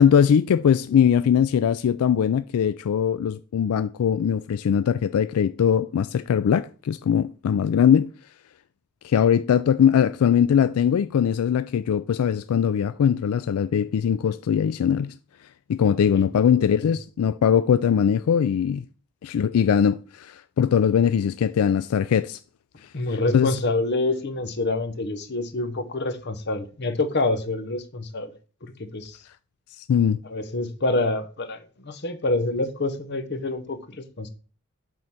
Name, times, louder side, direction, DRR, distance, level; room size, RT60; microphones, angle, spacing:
voice 1, 0.0-8.1 9.0-15.1 15.7-18.8 19.2-22.4 23.3-23.5 29.8-30.2, left 8 dB, 85° left, 0.3 m, -21 dB
voice 2, 16.5-16.9 22.9-28.3 28.6-29.2 30.2-34.3, left 2 dB, 50° left, 0.9 m, -27 dB
7.7 x 3.9 x 5.7 m
head